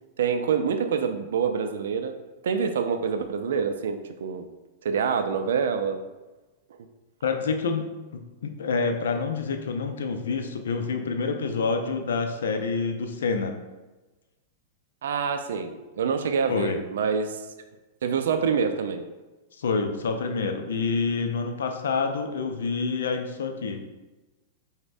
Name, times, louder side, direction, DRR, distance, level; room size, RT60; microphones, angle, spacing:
voice 1, 0.2-2.2 2.4-4.5 4.8-6.0 15.0-17.5 18.0-19.1, right 6 dB, 75° right, 8 dB, 0.3 m, -26 dB
voice 2, 7.2-13.5 16.5-16.8 19.6-23.8, left 4 dB, 80° left, 6 dB, 0.4 m, -27 dB
5.0 x 2.1 x 2.6 m, 1.1 s
hypercardioid pair, 110°, 0 cm